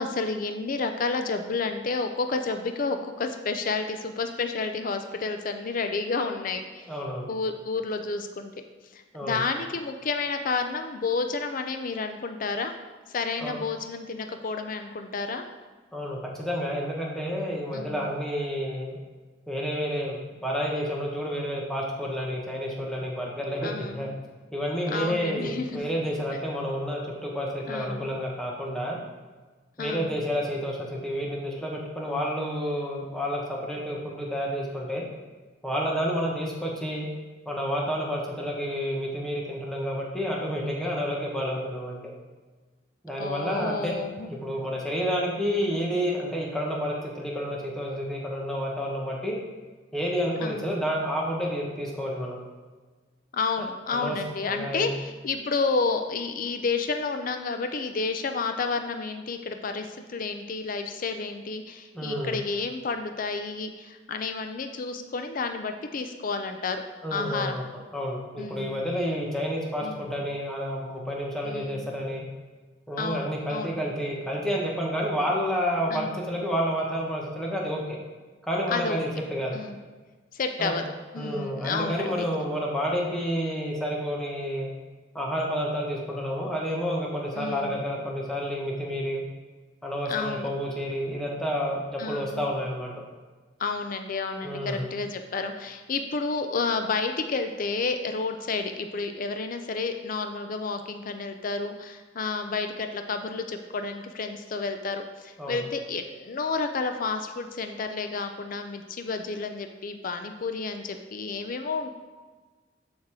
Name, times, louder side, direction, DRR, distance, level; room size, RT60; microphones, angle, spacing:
voice 1, 0.0-6.9 7.3-8.5 8.9-12.7 13.1-15.4 17.7-18.0 23.6-24.1 24.9-25.8 27.7-28.1 29.8-30.1 43.2-44.3 50.4-50.7 53.3-66.8 67.1-67.6 68.4-68.7 69.8-70.0 71.4-71.9 73.0-73.7 75.9-76.2 78.7-79.0 79.5-79.8 80.3-80.9 81.1-82.3 87.4-87.8 90.1-90.5 92.0-92.5 93.6-111.9, left 4 dB, 45° left, 7 dB, 0.5 m, -30 dB
voice 2, 6.9-7.3 9.1-9.4 13.4-13.6 15.9-19.0 19.5-20.1 20.4-24.1 24.5-29.0 29.8-35.0 35.6-37.1 37.4-42.0 43.0-43.9 44.3-49.4 49.9-52.4 53.9-54.2 54.5-54.9 61.9-62.4 67.0-67.6 67.9-72.2 72.9-78.0 78.4-79.6 80.6-80.8 81.2-84.7 85.1-89.2 89.8-92.9 94.4-94.9 105.4-105.6, equal, 5° left, -3 dB, 1.3 m, -30 dB
7.3 x 6.4 x 3.7 m, 1.3 s
head